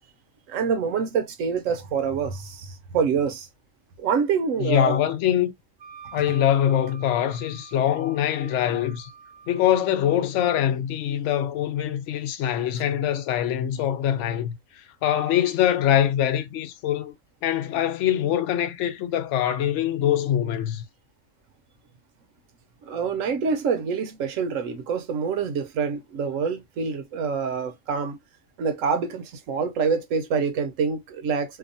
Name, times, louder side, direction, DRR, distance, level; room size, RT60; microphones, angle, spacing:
voice 1, 0.5-3.5 4.0-5.0 6.3-6.4 12.8-12.9 22.8-28.2 28.6-31.6, right 6 dB, 75° right, 1.0 m, -26 dB
voice 2, 4.6-5.5 6.1-9.1 9.5-17.1 17.4-20.8, left 10 dB, 70° left, 0.8 m, -23 dB
Wind instrument woodwind instrument, 5.8-10.3, right 7 dB, 50° right, 0.6 m, -47 dB
2.8 x 2.1 x 2.6 m
omnidirectional pair, 1.4 m